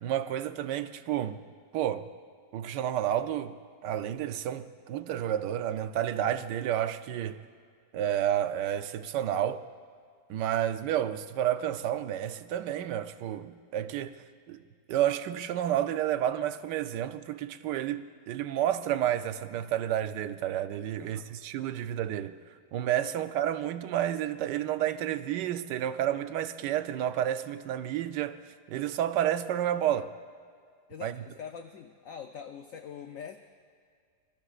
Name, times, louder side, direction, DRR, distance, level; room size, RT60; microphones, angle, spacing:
voice 1, 0.0-1.4 1.7-2.1 2.5-3.6 3.8-7.4 7.9-9.6 10.3-14.6 14.9-22.4 22.7-28.4 28.7-30.1 31.0-31.1, right 11 dB, 80° right, 1.3 m, -30 dB
voice 2, 30.9-33.4, left 7 dB, 65° left, 0.9 m, -44 dB
24.5 x 22.5 x 2.5 m
omnidirectional pair, 1.9 m